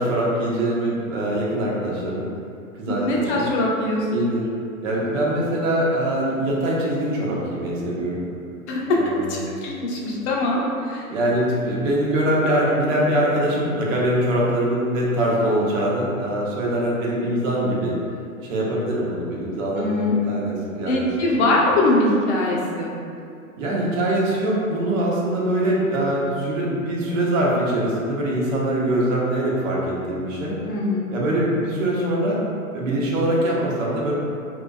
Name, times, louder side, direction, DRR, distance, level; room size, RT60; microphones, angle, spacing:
voice 1, 0.0-2.3 2.7-3.5 4.1-4.5 4.8-8.2 8.9-9.4 11.1-18.0 18.4-21.1 21.4-21.6 23.6-30.5 31.1-32.4 32.7-34.1, right 1 dB, 65° right, -4 dB, 0.7 m, -23 dB
voice 2, 2.9-4.1 8.7-9.0 9.3-11.0 19.8-20.1 20.9-22.9 30.7-31.1, left 2 dB, 50° left, -3 dB, 0.6 m, -22 dB
2.5 x 2.2 x 2.2 m, 2.5 s
hypercardioid pair, 110°, 43 cm